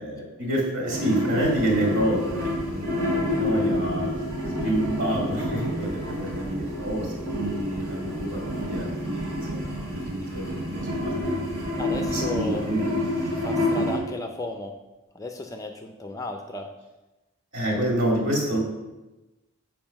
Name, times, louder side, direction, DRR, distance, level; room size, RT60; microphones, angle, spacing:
voice 1, 0.0-12.9 17.5-18.6, right 1 dB, 60° right, -2 dB, 2.5 m, -28 dB
sound 1, 0.8-14.0, left 1 dB, 85° right, 2.8 m, -29 dB
sound 2, 1.4-14.2 14.8-14.9, equal, 30° right, 1.9 m, -42 dB
voice 2, 11.8-12.7 13.3-14.8 15.1-16.7, left 2 dB, 15° left, 4 dB, 0.4 m, -34 dB
7.5 x 4.7 x 5.8 m, 1.1 s
head